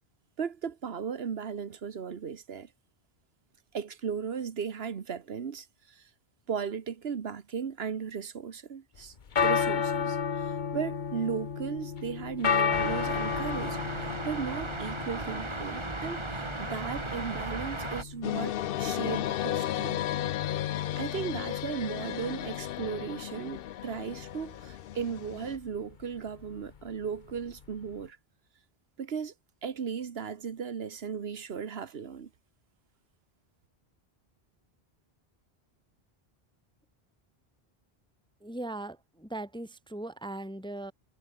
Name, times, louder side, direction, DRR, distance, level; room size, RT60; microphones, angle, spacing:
voice 1, 0.4-2.7 3.7-6.1 6.5-9.1 9.4-20.0 20.9-28.2 29.0-29.3 29.6-32.3, right 6 dB, 75° right, 1.4 m, -36 dB
sound 1, 9.0-28.1, left 6 dB, 50° left, 1.1 m, -34 dB
sound 2, 12.7-18.0, right 2 dB, 25° right, 2.4 m, -36 dB
sound 3, 18.2-25.6, left 12 dB, 65° left, 0.7 m, -34 dB
voice 2, 38.4-40.9, right 1 dB, 5° left, 0.7 m, -39 dB
omnidirectional pair, 1.1 m